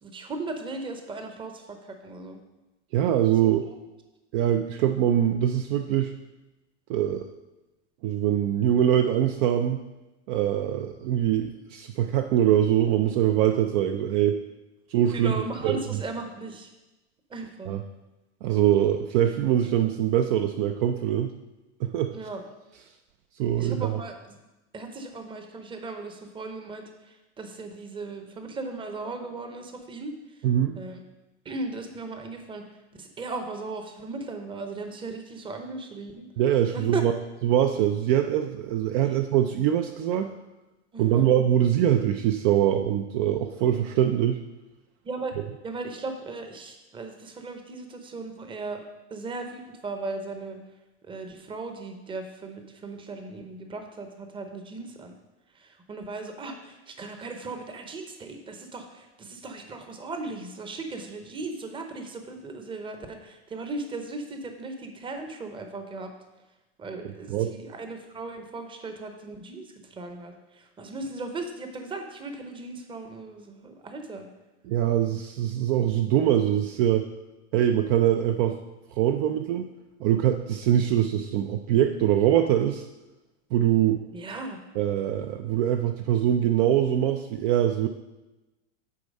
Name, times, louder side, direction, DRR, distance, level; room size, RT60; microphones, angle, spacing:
voice 1, 0.0-2.4 3.4-3.5 15.1-16.7 17.3-17.7 22.1-22.4 23.6-24.4 24.7-30.1 30.7-31.0 31.4-32.6 32.9-36.2 36.7-37.0 39.0-39.2 40.9-41.3 45.0-45.4 45.6-48.8 49.1-50.6 51.0-55.1 55.5-66.1 66.8-74.3 84.1-84.6, right 3 dB, 15° right, 5 dB, 0.8 m, -37 dB
voice 2, 2.9-3.7 4.3-6.1 6.9-7.3 8.0-9.8 10.3-14.4 14.9-15.3 15.6-15.8 17.7-17.8 18.4-21.3 21.8-22.1 23.4-24.0 30.4-30.8 36.4-37.1 37.4-40.3 41.0-44.4 67.3-67.5 74.7-77.0 77.5-78.6 79.0-79.7 80.0-82.9 83.5-84.0 84.8-87.9, right 11 dB, 45° right, 6 dB, 0.5 m, -23 dB
8.5 x 4.5 x 5.3 m, 1.0 s
supercardioid pair, 140°, 36 cm